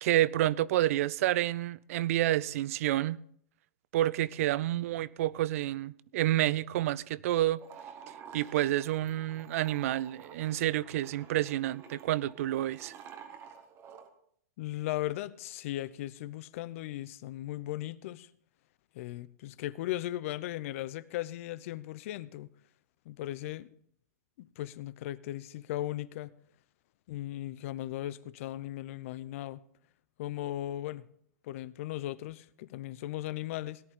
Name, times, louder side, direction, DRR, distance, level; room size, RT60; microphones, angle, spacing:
voice 1, 0.0-3.2 3.9-7.6 8.3-12.9, right 14 dB, 60° right, 0.5 m, -29 dB
sound 1, 7.6-14.1, right 7 dB, 30° right, 1.5 m, -51 dB
voice 2, 14.6-18.3 18.9-22.5 23.1-23.7 24.4-26.4 27.1-29.6 30.2-31.0 31.4-33.8, left 14 dB, 55° left, 0.6 m, -37 dB
17.5 x 11.0 x 3.7 m
hypercardioid pair, 125°, 8 cm